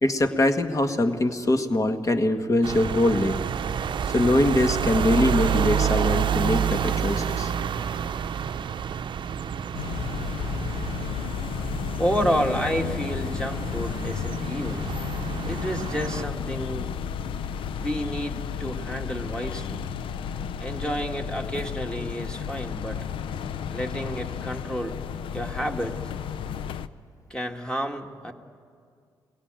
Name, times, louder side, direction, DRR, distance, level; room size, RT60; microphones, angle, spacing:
voice 1, 0.0-3.4 4.1-7.5, left 1 dB, 40° left, 7 dB, 1.6 m, -23 dB
sound 1, 2.6-16.3, right 8 dB, 60° right, 0.7 m, -29 dB
sound 2, 9.7-26.9, left 8 dB, 75° left, 0.6 m, -32 dB
voice 2, 12.0-14.9 15.5-16.9 17.7-19.9 20.6-23.0 23.7-25.0 25.3-26.0 27.3-28.3, equal, 10° left, 3 dB, 1.9 m, -30 dB
21.5 x 17.0 x 9.0 m, 2.2 s
supercardioid pair, 50°, 9 cm